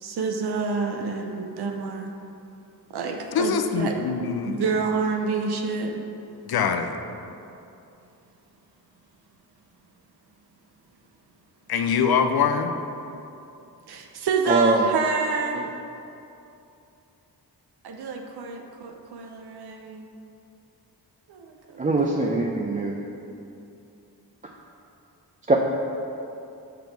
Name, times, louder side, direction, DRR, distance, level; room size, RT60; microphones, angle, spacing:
voice 1, 0.0-2.1 2.9-4.1 4.5-6.0 13.9-15.7 17.8-20.1 21.3-22.9 23.2-23.4, right 4 dB, 85° right, 3 dB, 0.6 m, -28 dB
voice 2, 3.3-4.6 6.5-6.9 11.7-12.7, left 6 dB, 70° left, 7 dB, 0.6 m, -23 dB
voice 3, 14.5-14.8 21.8-23.0 25.5-25.6, right 2 dB, 20° right, -1 dB, 0.5 m, -22 dB
6.0 x 5.2 x 4.5 m, 2.7 s
cardioid pair, 60°, 39 cm